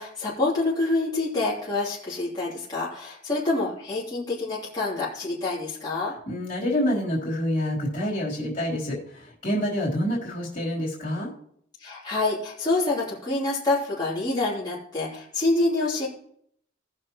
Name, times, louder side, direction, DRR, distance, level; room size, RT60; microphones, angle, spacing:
voice 1, 0.0-6.1 11.8-16.1, left 2 dB, 20° left, -8 dB, 3.1 m, -27 dB
voice 2, 6.3-11.3, equal, 45° left, -5 dB, 3.6 m, -27 dB
18.5 x 6.3 x 3.0 m, 0.67 s
head